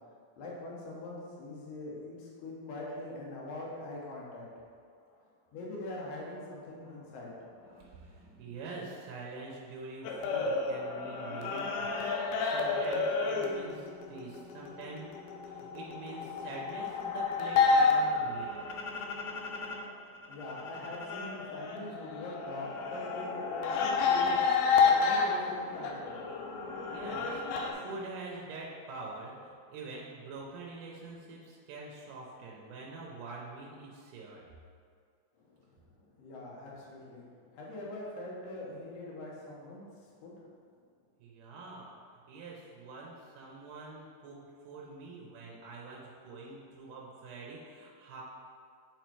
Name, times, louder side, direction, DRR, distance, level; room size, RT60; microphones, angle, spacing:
voice 1, 0.4-4.7 5.5-7.9 19.9-28.0 35.3-40.3, left 2 dB, 65° left, -5 dB, 1.6 m, -43 dB
voice 2, 7.7-15.1 15.4-18.7 26.9-27.4 27.7-34.4 41.2-41.9 42.3-48.2, right 3 dB, 75° right, -3 dB, 2.1 m, -45 dB
sound 1, 10.0-19.8 20.2-27.7, left 4 dB, 80° left, 2.4 m, -30 dB
5.8 x 4.8 x 4.5 m, 2.2 s
omnidirectional pair, 4.4 m